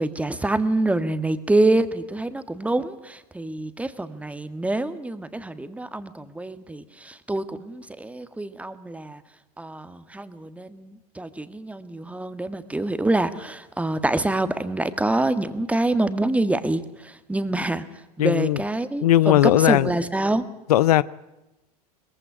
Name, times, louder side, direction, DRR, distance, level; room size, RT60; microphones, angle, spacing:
voice 1, 0.0-9.2 9.6-17.8 18.2-20.5, right 2 dB, 5° right, 1.6 m, -26 dB
voice 2, 18.2-18.6 19.0-19.9 20.7-21.0, left 14 dB, 70° left, 0.6 m, -18 dB
21.0 x 15.5 x 9.3 m
hypercardioid pair, 90°, 20 cm